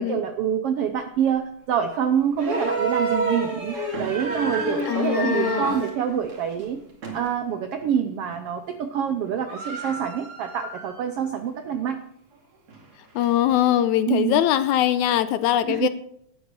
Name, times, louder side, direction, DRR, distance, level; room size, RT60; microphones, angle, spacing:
voice 1, 0.0-6.8 7.1-12.0 14.1-14.4 15.7-15.9, right 8 dB, 80° right, 7 dB, 1.3 m, -26 dB
sound 1, 1.8-1.9 2.5-2.6 3.5-7.4 7.8-8.0 8.3-8.7 9.0-9.1 9.2-11.2 11.6-11.7 12.3-13.7, right 1 dB, 50° right, 3.1 m, -37 dB
sound 2, 2.4-5.9 7.3-7.4, right 3 dB, 25° right, 2.0 m, -27 dB
voice 2, 4.9-5.9 13.2-15.9, left 12 dB, 80° left, 12 dB, 1.9 m, -22 dB
12.5 x 9.5 x 5.3 m, 0.72 s
omnidirectional pair, 3.6 m